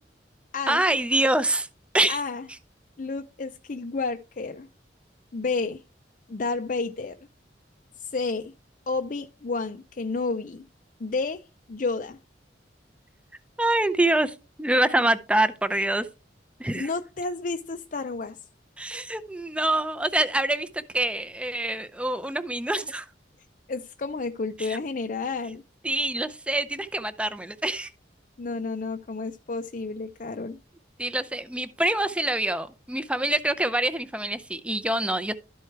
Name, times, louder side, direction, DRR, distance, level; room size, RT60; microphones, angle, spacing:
voice 1, 0.7-1.7 1.9-2.2 13.6-16.1 16.6-16.9 18.8-23.1 24.6-24.8 25.8-27.9 31.0-35.3, right 1 dB, 5° right, 0.5 m, -25 dB
voice 2, 2.1-2.4 3.0-4.7 5.3-5.8 6.3-7.3 8.0-8.5 8.9-10.6 11.0-12.2 16.7-18.4 23.7-25.6 28.4-30.6, left 3 dB, 45° left, 0.5 m, -31 dB
12.5 x 4.6 x 4.5 m
head